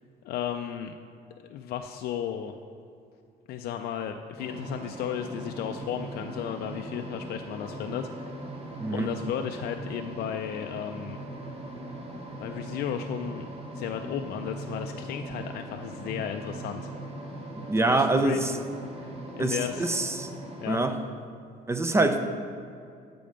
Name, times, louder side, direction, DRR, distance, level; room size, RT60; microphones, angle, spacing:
voice 1, 0.2-0.9 1.5-2.5 3.5-8.4 8.9-11.2 12.4-13.4 13.7-16.9 17.8-18.6 19.0-20.0 20.6-20.8, left 9 dB, 65° left, 5 dB, 0.4 m, -34 dB
sound 1, 4.4-20.7, right 1 dB, 35° right, 1.1 m, -40 dB
voice 2, 17.7-18.5 19.4-20.3 20.7-20.9 21.7-22.2, right 2 dB, 15° right, 8 dB, 0.5 m, -25 dB
7.6 x 5.2 x 5.1 m, 2.4 s
cardioid pair, 110°, 17 cm